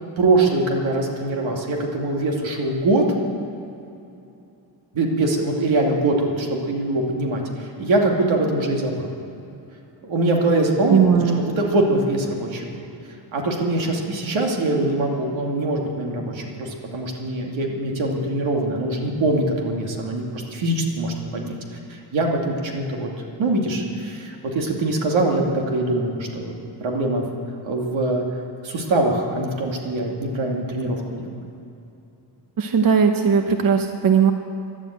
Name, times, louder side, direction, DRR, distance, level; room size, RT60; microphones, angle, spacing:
voice 1, 0.2-3.0 4.9-9.1 10.0-12.9 13.3-21.5 21.9-23.1 23.4-27.2 27.6-28.2 28.6-31.3, right 2 dB, 85° right, 1 dB, 2.5 m, -23 dB
voice 2, 10.9-11.4 32.6-34.3, right 7 dB, 50° right, 6 dB, 1.0 m, -18 dB
12.5 x 11.5 x 8.9 m, 2.8 s
cardioid pair, 85°, 45 cm